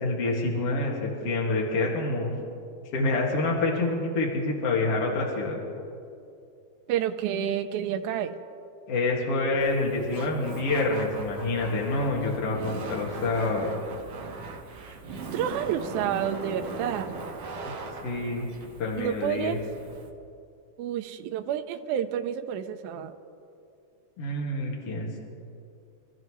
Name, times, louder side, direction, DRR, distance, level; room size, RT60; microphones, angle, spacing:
voice 1, 0.0-2.3 2.9-5.6 8.9-13.7 17.6-17.7 18.0-18.5 18.8-19.6 24.2-25.2, left 2 dB, 50° left, -2 dB, 2.7 m, -27 dB
voice 2, 6.9-8.3 15.3-17.1 19.0-19.6 20.8-23.1, right 9 dB, 80° right, 6 dB, 2.0 m, -29 dB
Laughter, 9.6-20.1, right 3 dB, 55° right, 2.0 m, -39 dB
27.0 x 14.0 x 3.2 m, 2.5 s
omnidirectional pair, 3.8 m